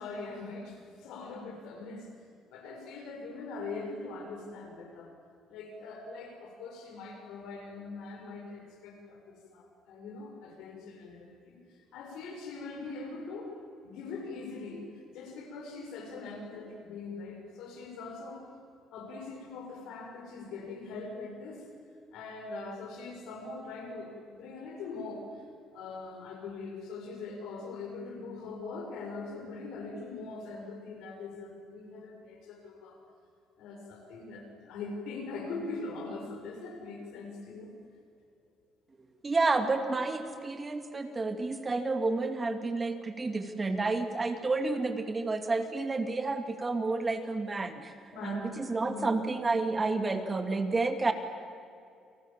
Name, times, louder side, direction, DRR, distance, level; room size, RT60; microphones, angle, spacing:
voice 1, 0.0-2.1 2.5-5.1 5.5-11.6 11.9-13.5 13.8-14.9 15.1-18.5 18.9-21.7 22.1-25.5 25.7-33.0 33.6-37.7 48.1-48.5 48.8-49.1, left 3 dB, 85° left, 3 dB, 6.9 m, -42 dB
voice 2, 39.2-47.9 48.2-51.1, right 3 dB, 25° right, 7 dB, 2.4 m, -30 dB
29.0 x 27.0 x 7.6 m, 2.4 s
cardioid pair, 115°, 0 cm